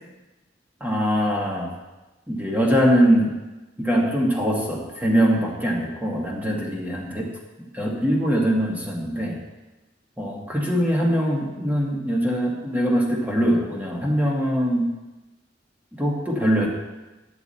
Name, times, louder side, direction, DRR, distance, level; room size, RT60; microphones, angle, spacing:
voice 1, 0.8-1.7 2.3-3.3 3.8-7.3 7.7-9.4 10.2-14.9 15.9-16.7, equal, 10° right, -2 dB, 1.6 m, -22 dB
9.9 x 7.0 x 4.2 m, 1.1 s
head